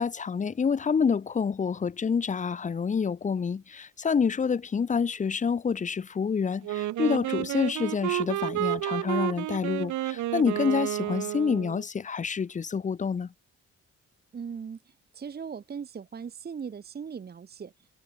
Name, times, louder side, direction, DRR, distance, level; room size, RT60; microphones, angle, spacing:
voice 1, 0.0-13.3, left 6 dB, 25° left, 0.7 m, -27 dB
Wind instrument woodwind instrument, 6.6-11.8, right 15 dB, 70° right, 0.6 m, -30 dB
voice 2, 14.3-17.9, right 6 dB, 30° right, 0.9 m, -39 dB
cardioid pair, 130°, 30 cm